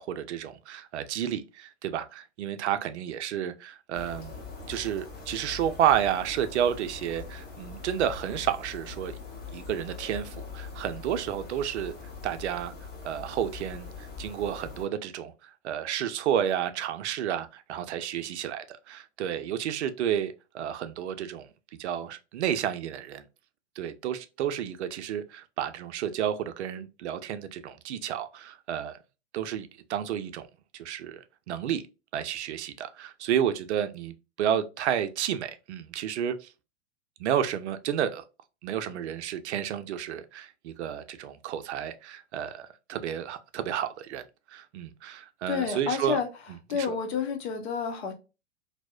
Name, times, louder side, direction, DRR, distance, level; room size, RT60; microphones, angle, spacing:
voice 1, 0.0-4.4 4.7-9.2 9.5-11.9 12.2-12.7 13.0-21.5 21.8-23.2 23.8-29.0 29.3-30.5 30.7-31.8 32.1-36.5 37.2-38.2 38.6-44.2 44.5-46.2 46.7-47.0, right 9 dB, 65° right, 0.5 m, -31 dB
sound 1, 3.9-14.9, left 5 dB, 25° left, 1.0 m, -42 dB
voice 2, 45.5-46.3 46.7-48.1, left 6 dB, 60° left, 0.8 m, -29 dB
2.7 x 2.0 x 2.3 m
hypercardioid pair, 105°, 37 cm